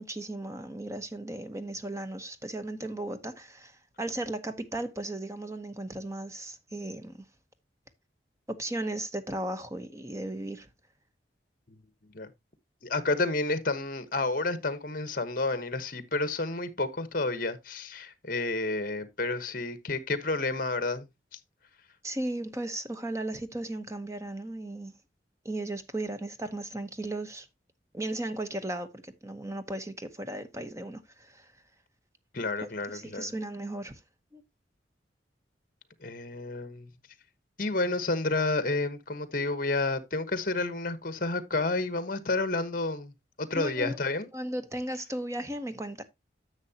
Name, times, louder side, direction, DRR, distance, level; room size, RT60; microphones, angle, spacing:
voice 1, 0.0-7.3 8.5-10.7 22.0-25.0 25.4-27.5 27.9-31.5 32.6-34.0 34.3-34.4 43.5-44.0 44.3-46.0, right 1 dB, 15° right, 0.9 m, -36 dB
voice 2, 12.8-21.1 32.3-33.3 36.0-36.9 37.6-43.1 43.4-44.3, left 3 dB, 50° left, 1.2 m, -30 dB
10.5 x 7.1 x 2.8 m
head